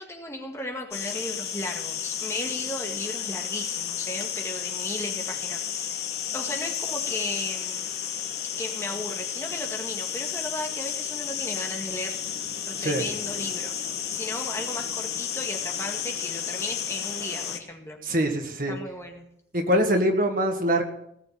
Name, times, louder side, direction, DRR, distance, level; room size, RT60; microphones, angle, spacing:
voice 1, 0.0-7.9 8.4-12.2 12.7-13.8 14.1-18.0 18.7-19.3, left 1 dB, 15° left, 2 dB, 1.9 m, -35 dB
sound 1, 0.9-17.6, left 8 dB, 60° left, 1.4 m, -32 dB
voice 2, 18.0-18.7 19.5-20.8, equal, 50° right, 4 dB, 1.8 m, -23 dB
18.0 x 7.0 x 8.8 m, 0.73 s
head